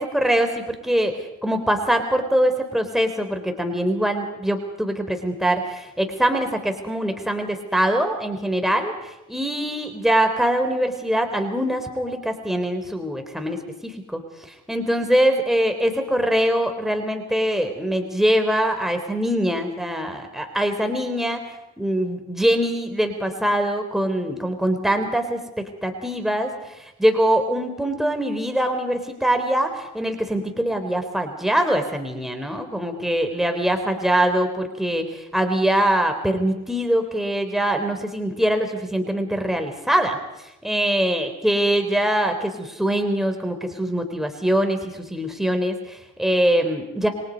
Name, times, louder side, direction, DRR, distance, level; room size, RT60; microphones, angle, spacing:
voice 1, 0.0-40.2 40.6-47.1, right 1 dB, ahead, 5 dB, 3.8 m, -23 dB
28.5 x 22.5 x 5.3 m, 0.93 s
cardioid pair, 90°, 30 cm